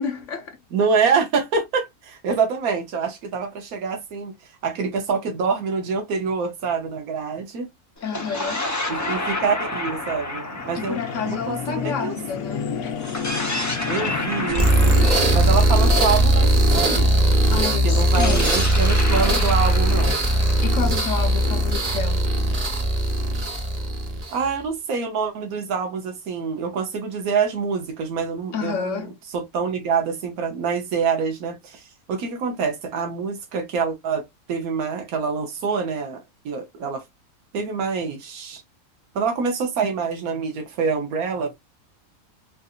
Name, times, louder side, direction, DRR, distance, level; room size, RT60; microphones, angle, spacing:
voice 1, 0.0-0.6 8.0-8.6 10.7-12.9 17.5-18.5 20.6-22.3 28.5-29.1, left 6 dB, 65° left, 1.2 m, -29 dB
voice 2, 0.7-4.3 4.6-7.7 8.9-11.0 11.3-12.1 13.9-17.1 17.8-20.1 24.3-37.0 37.5-38.6 39.1-41.5, right 5 dB, 85° right, 1.3 m, -26 dB
sound 1, 8.0-12.4 13.0-16.9 18.0-21.8, left 2 dB, 20° left, 0.5 m, -31 dB
sound 2, 8.8-18.6, left 6 dB, 90° left, 1.3 m, -33 dB
sound 3, 14.5-24.5, right 1 dB, 35° right, 0.7 m, -19 dB
3.9 x 2.5 x 2.3 m
omnidirectional pair, 1.5 m